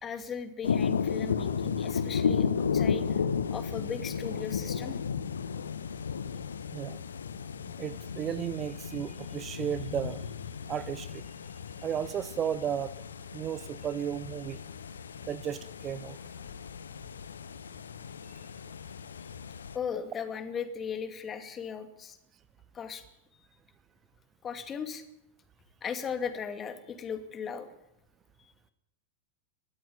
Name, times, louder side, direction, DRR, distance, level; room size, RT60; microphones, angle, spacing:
voice 1, 0.0-3.0 3.5-5.0 19.7-22.2 22.7-23.0 24.4-25.0 25.8-27.7, left 7 dB, 25° left, 8 dB, 2.5 m, -37 dB
sound 1, 0.6-19.8, left 6 dB, 70° left, 1.0 m, -34 dB
voice 2, 7.8-10.2 10.7-11.2 11.8-12.9 13.3-14.6 15.3-16.2, right 9 dB, 25° right, 15 dB, 0.8 m, -34 dB
20.5 x 13.5 x 9.8 m, 0.80 s
figure-of-eight pair, 90°, 0 cm